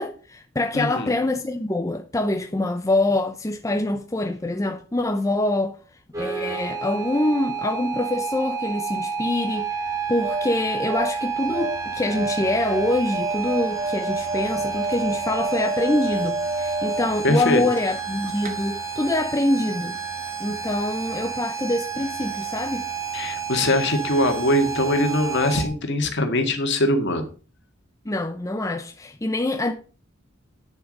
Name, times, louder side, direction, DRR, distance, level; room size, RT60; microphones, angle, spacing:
voice 1, 0.0-5.8 6.2-9.8 10.1-20.0 20.4-22.9 28.0-29.7, left 1 dB, 15° left, 0.6 m, -25 dB
voice 2, 0.7-1.1 17.2-17.6 23.1-27.2, left 1 dB, 60° left, 1.8 m, -22 dB
sound 1, 6.1-25.7, right 6 dB, 15° right, 2.5 m, -30 dB
sound 2, 9.9-18.1 18.4-18.5, right 2 dB, 45° right, 1.7 m, -30 dB
9.5 x 6.9 x 5.2 m
head